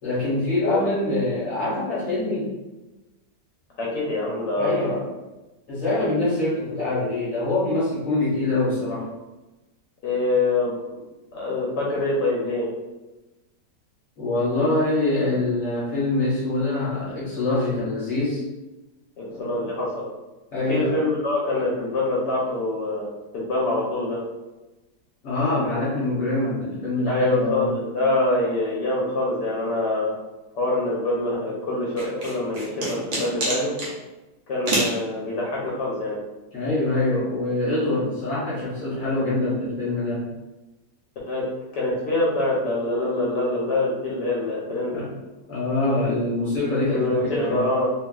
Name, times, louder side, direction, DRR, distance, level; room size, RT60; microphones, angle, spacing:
voice 1, 0.0-2.5 4.6-5.1 5.7-9.1 14.2-18.4 19.3-19.5 20.5-20.9 25.2-27.7 36.5-40.3 44.9-45.1 45.5-47.7, left 2 dB, 55° left, -10 dB, 1.2 m, -24 dB
voice 2, 3.8-5.0 10.0-10.8 11.3-12.7 19.2-20.1 20.7-24.2 27.1-30.1 30.5-33.7 34.5-36.2 41.3-41.5 41.7-45.1 46.9-47.9, left 2 dB, 80° left, -5 dB, 1.3 m, -25 dB
sound 1, 32.0-33.9 34.7-35.0, right 2 dB, 55° right, 0.9 m, -26 dB
3.1 x 2.4 x 2.3 m, 1.1 s
omnidirectional pair, 1.9 m